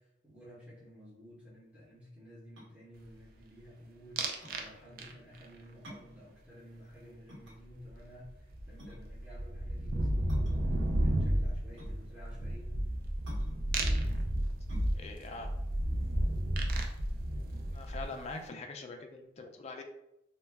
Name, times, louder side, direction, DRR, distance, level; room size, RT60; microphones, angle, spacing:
voice 1, 0.0-12.7, equal, 10° right, -9 dB, 0.7 m, -53 dB
sound 1, 2.5-16.8, equal, 75° right, 1.0 m, -54 dB
sound 2, 4.2-4.7 5.0-5.5 7.9-8.0 8.2-18.3, right 1 dB, 50° right, 0.3 m, -32 dB
voice 2, 14.9-15.5 17.7-19.8, left 3 dB, 35° left, 4 dB, 0.3 m, -43 dB
2.2 x 2.1 x 3.3 m, 0.83 s
head